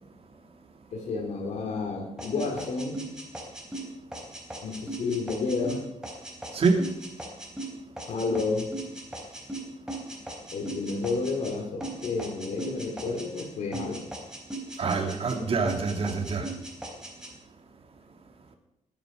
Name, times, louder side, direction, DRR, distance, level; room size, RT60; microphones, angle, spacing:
voice 1, 0.9-3.0 4.6-5.9 8.1-8.7 10.5-14.1, left 3 dB, 65° left, 2 dB, 2.6 m, -30 dB
sound 1, 2.2-11.5 11.8-13.5 13.7-15.4 15.7-17.3, right 2 dB, 5° right, 3.8 m, -38 dB
voice 2, 6.5-6.9 14.8-16.5, right 4 dB, 50° right, 4 dB, 2.3 m, -25 dB
19.5 x 9.7 x 5.0 m, 0.88 s
cardioid pair, 125°, 13 cm